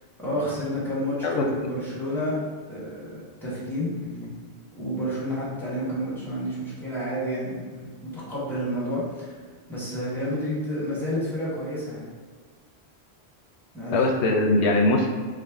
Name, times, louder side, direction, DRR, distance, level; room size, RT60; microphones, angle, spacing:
voice 1, 0.2-2.4 2.7-3.9 4.8-9.3 9.7-12.1 13.7-14.0, equal, ahead, -9 dB, 1.1 m, -30 dB
voice 2, 13.9-15.1, left 2 dB, 85° left, 1 dB, 0.9 m, -22 dB
4.9 x 2.0 x 3.5 m, 1.5 s
omnidirectional pair, 1.1 m